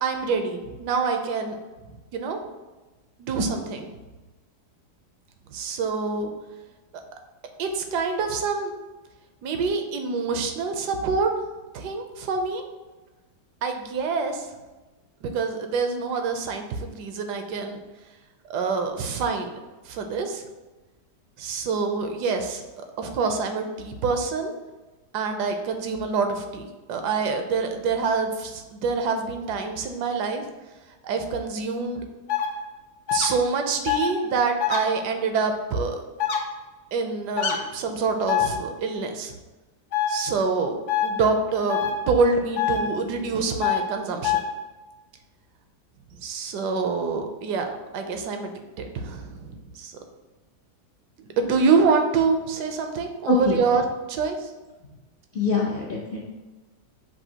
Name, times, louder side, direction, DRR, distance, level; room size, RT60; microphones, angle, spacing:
voice 1, 0.0-1.6 1.9-2.4 3.2-3.9 5.5-6.3 7.6-8.7 9.4-11.3 11.7-12.6 13.6-14.5 15.2-17.8 18.5-19.5 19.8-20.4 21.4-24.5 25.1-30.5 31.0-32.0 33.1-36.0 36.9-39.3 40.1-44.4 46.1-50.0 51.2-54.5, right 4 dB, 80° right, 5 dB, 1.2 m, -26 dB
sound 1, 32.3-32.5 33.1-33.3 33.8-34.1 34.6-34.8 36.2-36.4 37.4-37.6 38.3-38.5 39.9-40.1 40.9-41.1 41.7-41.9 42.6-42.8 43.6-43.8 44.2-44.4, left 10 dB, 60° left, 0.8 m, -23 dB
voice 2, 53.3-53.6 55.3-56.2, left 3 dB, 80° left, -3 dB, 0.4 m, -23 dB
6.2 x 2.6 x 2.8 m, 1.2 s
omnidirectional pair, 1.8 m